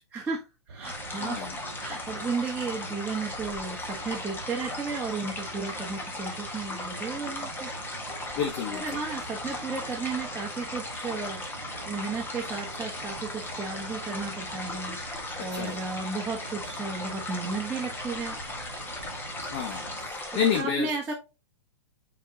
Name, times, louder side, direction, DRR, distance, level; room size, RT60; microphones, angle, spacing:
voice 1, 0.1-1.5 1.7-7.7 8.7-18.4 20.3-21.1, right 4 dB, 10° right, -5 dB, 1.3 m, -34 dB
sound 1, 0.7-20.1, right 4 dB, 70° right, 1.1 m, -45 dB
sound 2, 0.8-20.6, left 2 dB, 15° left, 1.4 m, -37 dB
voice 2, 1.2-1.6 8.3-8.8 15.4-15.8 19.5-20.9, left 7 dB, 45° left, 2 dB, 1.3 m, -29 dB
7.7 x 4.2 x 2.9 m, 0.28 s
hypercardioid pair, 115°, 15 cm